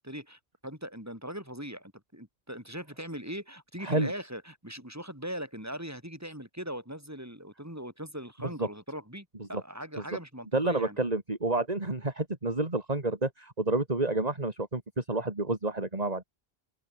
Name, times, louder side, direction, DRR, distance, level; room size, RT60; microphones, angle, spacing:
voice 1, 0.0-11.0, equal, 15° right, 6.8 m, -40 dB
voice 2, 10.5-16.2, right 2 dB, 35° right, 3.1 m, -29 dB
open air
omnidirectional pair, 1.1 m